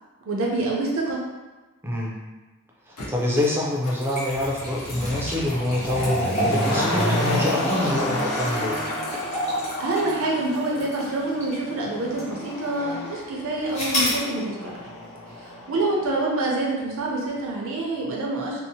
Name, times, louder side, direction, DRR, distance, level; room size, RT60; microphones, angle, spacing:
voice 1, 0.3-1.2 9.8-14.8 15.4-18.6, right 2 dB, 65° right, -2 dB, 0.6 m, -26 dB
voice 2, 1.8-2.2 2.9-8.8, left 1 dB, 10° right, -4 dB, 0.4 m, -26 dB
Motor vehicle (road), 3.0-3.1 3.8-16.7 17.0-17.1, left 1 dB, 70° left, 0.7 m, -31 dB
sound 1, 3.2-11.7 12.2-12.3 13.7-14.2, equal, 30° left, 0.8 m, -30 dB
2.7 x 2.0 x 2.7 m, 1.2 s
head